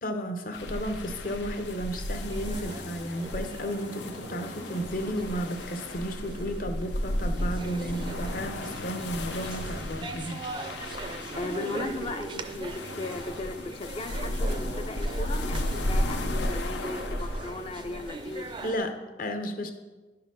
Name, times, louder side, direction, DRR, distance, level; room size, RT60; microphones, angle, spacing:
voice 1, 0.0-10.4 18.6-19.7, equal, 50° left, 7 dB, 0.8 m, -33 dB
sound 1, 0.5-18.7, left 1 dB, 85° left, 0.6 m, -34 dB
sound 2, 1.1-18.8, right 3 dB, 25° right, 0.4 m, -42 dB
Piano, 8.0-16.1, right 1 dB, 85° right, 0.9 m, -50 dB
voice 2, 11.3-18.5, left 2 dB, 30° left, 8 dB, 0.4 m, -36 dB
10.5 x 3.9 x 5.7 m, 1.2 s
head